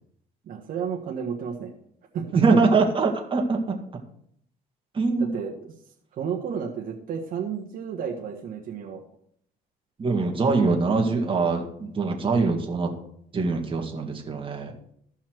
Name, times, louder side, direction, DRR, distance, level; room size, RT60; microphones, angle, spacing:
voice 1, 0.4-1.7 2.1-2.6 5.2-5.5 6.1-9.0, right 7 dB, 55° right, -1 dB, 1.4 m, -32 dB
voice 2, 2.3-3.8 4.9-5.3 10.0-12.9 13.3-14.7, right 4 dB, 30° right, 2 dB, 1.9 m, -23 dB
14.5 x 5.7 x 4.6 m, 0.69 s
cardioid pair, 110°, 17 cm